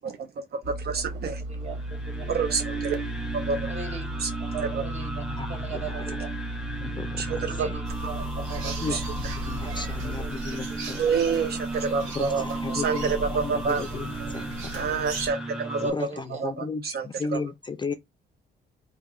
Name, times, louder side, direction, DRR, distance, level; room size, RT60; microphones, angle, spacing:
voice 1, 0.5-1.4 2.3-3.0 3.3-3.7 4.2-4.3 4.7-4.8 7.2-7.7 8.6-9.0 11.0-12.5 12.7-13.8 14.7-15.9 16.4-17.4, right 5 dB, 55° right, 0.5 m, -28 dB
Engine, 0.6-10.3, right 1 dB, 70° right, 1.6 m, -35 dB
voice 2, 1.5-1.8 2.1-2.3 3.7-4.1 4.4-5.2 5.5-6.3 7.5-9.0 9.5-10.3 10.7-10.8 11.3-11.9 15.6-16.4, right 6 dB, 35° right, 1.2 m, -40 dB
sound 1, 1.6-15.9, right 2 dB, 5° right, 0.9 m, -35 dB
voice 3, 5.3-6.2 6.8-7.2 7.6-7.7 8.8-11.0 12.2-14.9 15.8-17.9, left 4 dB, 25° left, 0.4 m, -35 dB
sound 2, 7.8-15.3, right 2 dB, 90° right, 1.1 m, -37 dB
2.8 x 2.7 x 3.7 m
cardioid pair, 90°, 20 cm